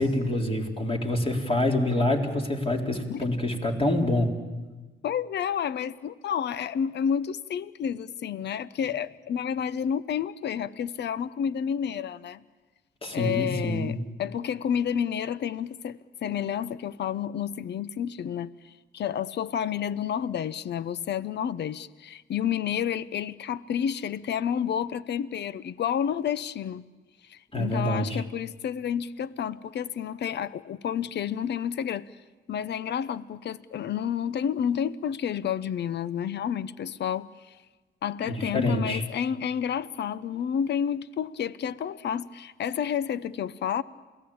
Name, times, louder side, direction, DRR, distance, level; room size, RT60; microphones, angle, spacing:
voice 1, 0.0-4.3 13.0-14.0 27.5-28.2 38.2-39.0, left 1 dB, 30° left, 4.0 m, -26 dB
voice 2, 5.0-12.4 13.1-26.8 27.2-32.1 32.5-37.6 38.0-43.8, left 8 dB, 60° left, 0.8 m, -30 dB
28.0 x 18.0 x 8.7 m
cardioid pair, 90°, 20 cm